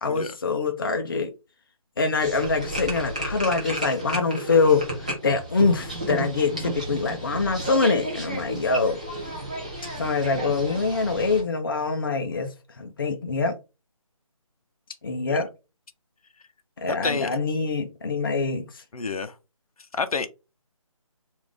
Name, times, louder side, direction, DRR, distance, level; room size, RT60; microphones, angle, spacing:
voice 1, 0.0-1.3 2.0-9.0 10.0-12.5 12.8-13.6 15.0-15.5 16.8-18.8, left 4 dB, 40° left, 0.5 m, -24 dB
sound 1, 2.2-11.4, right 1 dB, 15° right, 0.5 m, -33 dB
voice 2, 16.9-17.3 18.9-19.3 19.9-20.3, left 4 dB, 80° left, 0.6 m, -28 dB
3.4 x 2.5 x 3.5 m
figure-of-eight pair, 170°, 18 cm